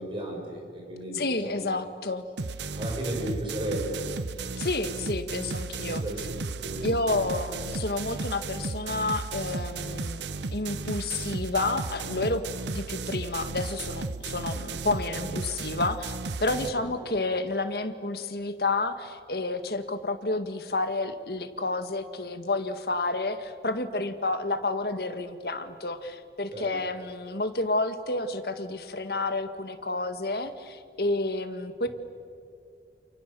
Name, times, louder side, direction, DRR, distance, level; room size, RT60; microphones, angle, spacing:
voice 1, 0.0-1.6 2.7-4.1 5.9-7.2 15.1-15.3 16.8-16.9 26.5-26.7, right 1 dB, 30° right, 1 dB, 6.1 m, -35 dB
voice 2, 1.1-2.3 4.6-6.0 6.8-10.2 10.5-12.4 12.7-16.1 16.4-31.9, left 2 dB, 60° left, 8 dB, 1.8 m, -30 dB
sound 1, 2.4-16.7, right 3 dB, 85° right, 0.9 m, -34 dB
29.0 x 28.5 x 7.0 m, 2.2 s
head